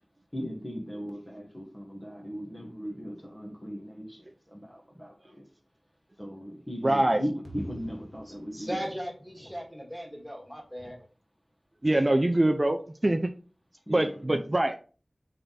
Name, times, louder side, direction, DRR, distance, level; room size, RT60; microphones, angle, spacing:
voice 1, 0.3-4.2 4.5-5.1 6.2-8.7 13.9-14.4, equal, 15° left, 1.1 m, -37 dB
voice 2, 6.8-7.2 11.8-13.2 13.9-14.7, right 1 dB, 35° right, 0.4 m, -24 dB
voice 3, 8.2-11.0, equal, ahead, 1.8 m, -38 dB
3.8 x 3.4 x 4.0 m
wide cardioid pair, 60°, 0 cm